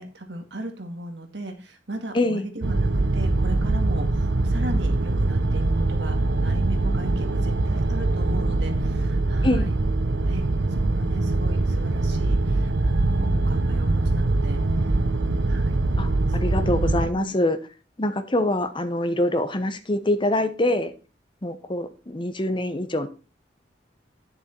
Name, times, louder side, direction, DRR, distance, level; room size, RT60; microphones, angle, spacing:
voice 1, 0.0-9.7 10.2-10.4 10.7-14.6 15.5-15.8 17.1-17.3, right 1 dB, 75° right, 4 dB, 2.0 m, -37 dB
voice 2, 2.1-2.5 9.4-9.7 16.0-17.6 18.0-20.9 21.4-23.1, left 1 dB, 30° left, 10 dB, 0.9 m, -24 dB
sound 1, 2.6-17.1, right 2 dB, 90° right, 0.8 m, -23 dB
10.0 x 6.9 x 4.5 m, 0.35 s
head